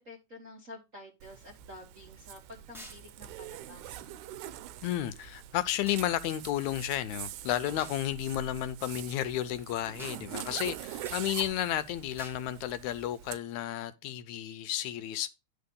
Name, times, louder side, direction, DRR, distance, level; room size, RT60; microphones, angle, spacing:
voice 1, 0.0-4.0, left 2 dB, 40° right, 1.1 m, -50 dB
Zipper (clothing), 1.2-13.4, right 12 dB, 80° right, 2.0 m, -44 dB
sound 1, 2.7-3.0 5.9-6.1 7.8-8.0 10.0-10.2 11.0-11.2 12.2-12.4, equal, ahead, 1.1 m, -47 dB
voice 2, 4.8-15.3, left 12 dB, 80° left, 1.9 m, -32 dB
10.5 x 4.2 x 5.3 m
omnidirectional pair, 3.5 m